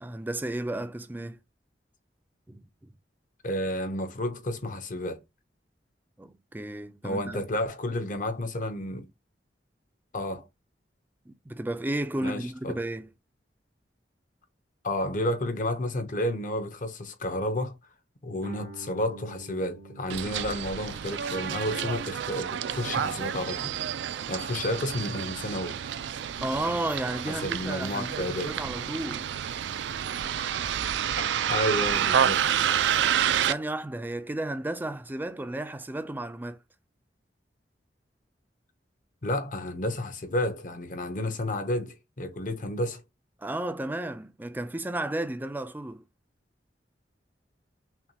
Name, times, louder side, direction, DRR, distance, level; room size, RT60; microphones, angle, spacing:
voice 1, 0.0-1.4 2.5-2.9 6.2-7.4 11.3-13.1 26.4-29.3 30.1-30.5 33.4-36.6 43.4-46.0, right 1 dB, 10° right, 0.4 m, -33 dB
voice 2, 3.4-5.2 7.0-9.1 10.1-10.5 12.2-12.8 14.8-17.8 18.2-23.7 24.3-25.8 27.3-28.6 31.2-32.4 39.2-43.0, left 1 dB, 50° left, 0.7 m, -31 dB
Guitar, 18.4-23.8, right 2 dB, 65° right, 0.8 m, -48 dB
Bus, 20.1-33.5, right 9 dB, 85° right, 0.4 m, -29 dB
5.7 x 2.2 x 2.8 m
head